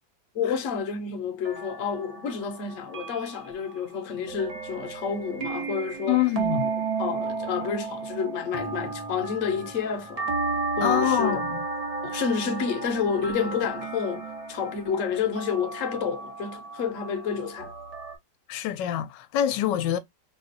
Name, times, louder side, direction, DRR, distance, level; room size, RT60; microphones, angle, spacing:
voice 1, 0.3-6.2 7.0-10.4 10.8-11.4 12.0-17.7, left 6 dB, 55° left, 1.0 m, -29 dB
sound 1, 1.4-18.2, right 4 dB, 40° right, 0.5 m, -33 dB
voice 2, 6.1-6.7 10.8-11.6 18.5-20.0, left 12 dB, 80° left, 1.2 m, -25 dB
4.4 x 2.4 x 2.5 m
omnidirectional pair, 1.9 m